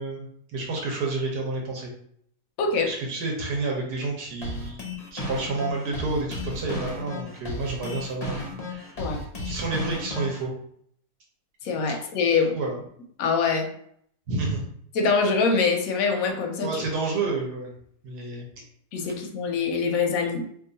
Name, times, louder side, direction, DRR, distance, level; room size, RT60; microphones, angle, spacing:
voice 1, 0.0-1.9 2.9-8.4 8.7-9.0 9.4-10.5 11.9-12.0 12.5-12.8 14.3-14.7 16.6-17.7 18.0-18.5, right 3 dB, 70° right, -1 dB, 1.3 m, -30 dB
voice 2, 2.6-2.9 9.0-9.2 11.6-12.5 13.2-13.7 14.9-16.8 18.9-20.4, left 4 dB, 70° left, 3 dB, 0.9 m, -24 dB
sound 1, 4.4-10.4, left 1 dB, 45° left, 0.5 m, -34 dB
2.9 x 2.3 x 3.8 m, 0.67 s
omnidirectional pair, 1.9 m